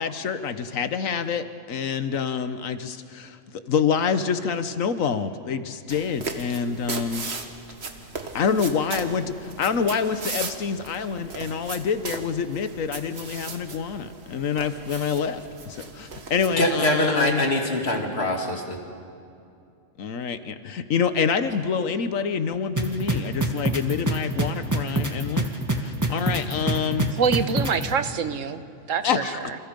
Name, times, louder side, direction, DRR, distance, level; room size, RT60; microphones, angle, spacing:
voice 1, 0.0-7.3 8.3-17.4 20.0-25.5 25.8-27.1 29.0-29.5, left 6 dB, 85° left, 11 dB, 1.4 m, -27 dB
sound 1, 5.9-16.5, right 4 dB, 55° right, 1.7 m, -37 dB
voice 2, 16.6-18.8, left 1 dB, 50° left, 2 dB, 2.8 m, -23 dB
sound 2, 22.8-27.8, right 2 dB, 15° right, 1.9 m, -24 dB
voice 3, 27.2-28.6 28.9-29.6, right 6 dB, 75° right, 11 dB, 1.4 m, -25 dB
28.5 x 27.5 x 5.3 m, 2.6 s
omnidirectional pair, 1.4 m